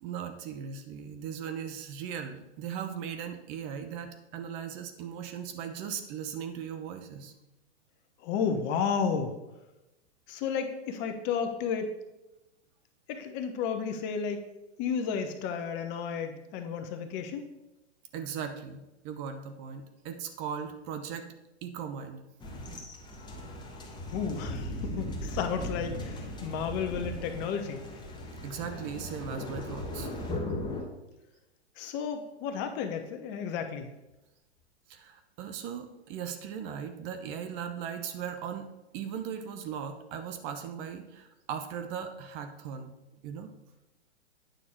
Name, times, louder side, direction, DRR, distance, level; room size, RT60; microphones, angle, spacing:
voice 1, 0.0-7.3 18.1-21.3 21.6-22.2 28.4-30.1 34.9-38.7 38.9-42.9 43.2-43.5, right 7 dB, 35° right, 8 dB, 0.9 m, -38 dB
voice 2, 8.2-9.4 10.3-11.9 13.1-14.4 14.8-17.4 24.1-27.8 31.8-33.9, left 6 dB, 30° left, 6 dB, 0.9 m, -32 dB
sound 1, 22.4-30.8, left 1 dB, 15° left, 1.3 m, -38 dB
9.2 x 6.3 x 4.3 m, 0.98 s
hypercardioid pair, 125°, 34 cm